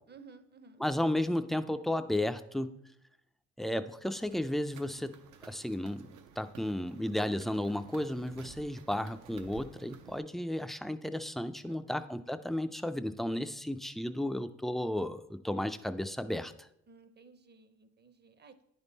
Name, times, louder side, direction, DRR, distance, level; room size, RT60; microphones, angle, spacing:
voice 1, 0.1-1.2 11.7-12.1 16.9-18.6, right 4 dB, 35° right, 10 dB, 0.6 m, -56 dB
voice 2, 0.8-2.7 3.6-6.0 6.4-16.5, left 1 dB, ahead, 10 dB, 0.3 m, -33 dB
sound 1, 4.1-10.2, right 7 dB, 90° right, 0.7 m, -54 dB
9.8 x 3.6 x 4.0 m, 0.78 s
cardioid pair, 90°, 30 cm